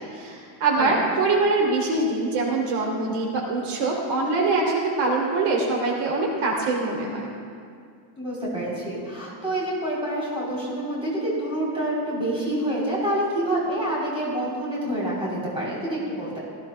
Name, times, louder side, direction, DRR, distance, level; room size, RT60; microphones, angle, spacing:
voice 1, 0.0-7.3, right 3 dB, 80° right, -2 dB, 3.2 m, -24 dB
voice 2, 8.2-16.4, right 1 dB, 10° right, -6 dB, 3.7 m, -27 dB
19.0 x 15.0 x 2.3 m, 2.2 s
cardioid pair, 175°, 49 cm